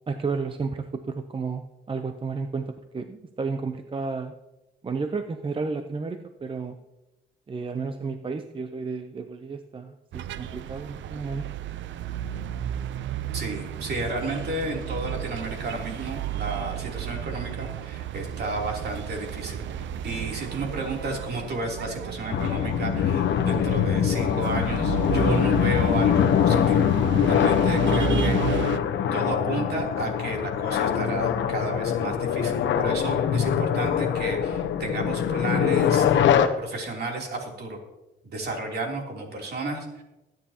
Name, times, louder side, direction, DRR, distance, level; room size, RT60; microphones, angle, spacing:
voice 1, 0.1-4.3 4.8-6.8 7.5-11.5, right 4 dB, 25° right, 8 dB, 0.7 m, -32 dB
sound 1, 10.1-28.8, right 10 dB, 70° right, 0.6 m, -33 dB
voice 2, 13.3-26.9 27.3-28.8 29.1-36.1 36.6-37.8 38.2-40.0, right 2 dB, 55° right, 1 dB, 3.2 m, -32 dB
sound 2, 22.3-36.5, left 8 dB, 70° left, 0.9 m, -23 dB
21.0 x 9.3 x 2.9 m, 1.0 s
cardioid pair, 90°, 20 cm